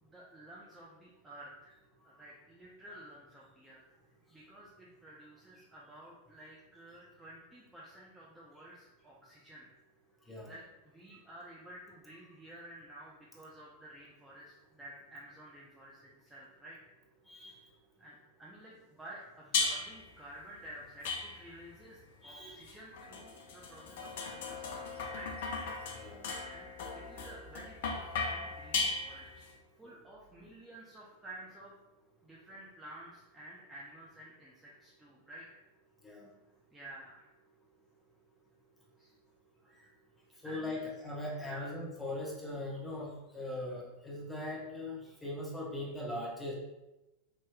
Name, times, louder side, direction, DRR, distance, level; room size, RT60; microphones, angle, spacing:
voice 1, 0.0-1.8 2.0-3.8 4.3-9.7 10.4-16.8 18.0-25.3 26.5-29.4 29.8-31.7 32.2-35.6 36.7-37.3 39.0-39.1 39.6-39.8 40.4-40.9 41.4-41.7, right 1 dB, 10° right, -6 dB, 0.6 m, -52 dB
voice 2, 17.3-17.6 22.2-22.7 25.9-26.3 36.0-36.3 40.4-46.5, left 1 dB, 10° left, -3 dB, 1.0 m, -40 dB
sound 1, 19.5-20.1 21.0-21.7 22.7-29.5, left 4 dB, 55° left, 0.5 m, -37 dB
4.5 x 2.9 x 2.2 m, 0.99 s
figure-of-eight pair, 90°, 0 cm